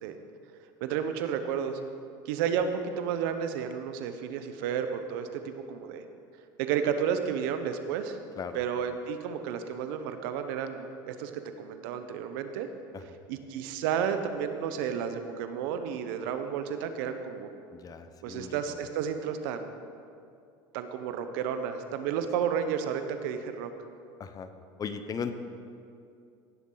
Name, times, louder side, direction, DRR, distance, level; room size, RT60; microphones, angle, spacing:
voice 1, 0.8-1.8 2.2-6.0 6.6-8.2 8.5-12.7 13.3-17.5 18.2-19.8 20.7-23.7, right 8 dB, 75° right, 8 dB, 0.9 m, -32 dB
voice 2, 17.7-18.8 24.2-24.5 24.8-25.3, left 6 dB, 35° left, 10 dB, 0.8 m, -37 dB
16.5 x 7.2 x 3.9 m, 2.4 s
supercardioid pair, 95°, 11 cm